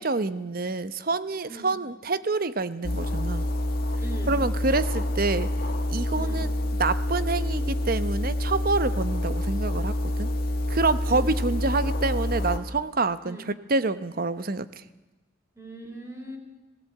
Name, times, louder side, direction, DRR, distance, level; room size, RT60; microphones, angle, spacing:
voice 1, 0.0-3.5 4.3-5.5 5.9-6.5 6.8-10.3 10.7-13.4 13.7-14.8, right 3 dB, 50° right, 14 dB, 0.9 m, -27 dB
voice 2, 1.4-1.8 4.0-4.4 6.1-6.5 11.1-11.4 13.2-13.5 15.6-16.4, right 1 dB, 15° right, 2 dB, 3.5 m, -40 dB
sound 1, 2.8-12.6, left 1 dB, 50° left, 1.9 m, -27 dB
18.5 x 18.0 x 8.5 m, 1.1 s
head